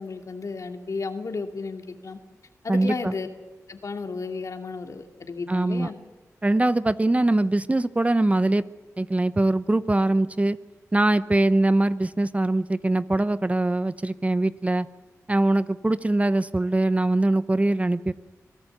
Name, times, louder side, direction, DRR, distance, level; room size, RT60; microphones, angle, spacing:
voice 1, 0.0-2.2 2.6-3.3 3.7-6.0, left 4 dB, 60° left, 5 dB, 2.4 m, -33 dB
voice 2, 2.7-3.1 5.5-5.9 6.4-8.6 9.0-10.6 10.9-14.9 15.3-18.1, right 2 dB, 20° right, 15 dB, 0.8 m, -22 dB
25.5 x 16.5 x 8.0 m, 1.2 s
cardioid pair, 50°, 6 cm